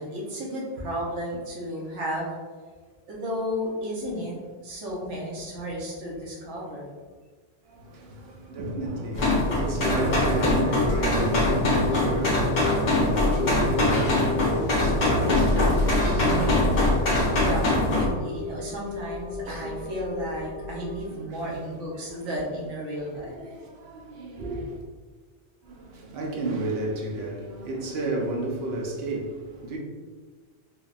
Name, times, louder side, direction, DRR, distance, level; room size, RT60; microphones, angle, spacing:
voice 1, 0.0-2.4 3.1-4.4 4.6-6.9 16.2-16.6 17.4-23.4, equal, 85° right, 1.1 m, -33 dB
voice 2, 7.6-16.4 21.1-21.4 21.9-22.3 23.1-24.8 25.6-29.8, right 2 dB, 65° right, 0.7 m, -32 dB
sound 1, 9.1-18.1, left 1 dB, 50° left, 0.6 m, -23 dB
sound 2, 10.4-21.0, left 4 dB, 85° left, 0.9 m, -34 dB
3.3 x 2.1 x 2.3 m
omnidirectional pair, 1.2 m